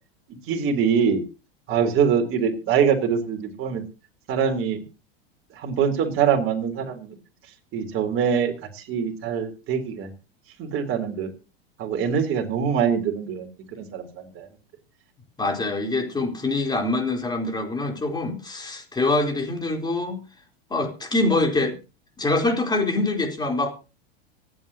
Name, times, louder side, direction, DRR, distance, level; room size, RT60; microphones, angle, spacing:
voice 1, 0.5-1.2 1.7-3.8 4.3-4.8 5.6-7.2 7.7-10.1 10.6-11.3 11.8-14.1 14.4-14.5, right 7 dB, 45° right, 3 dB, 3.9 m, -24 dB
voice 2, 15.4-20.2 20.7-21.7 22.2-23.7, left 2 dB, 15° left, 3 dB, 4.0 m, -24 dB
25.5 x 9.0 x 2.9 m, 0.31 s
hypercardioid pair, 105°, 30 cm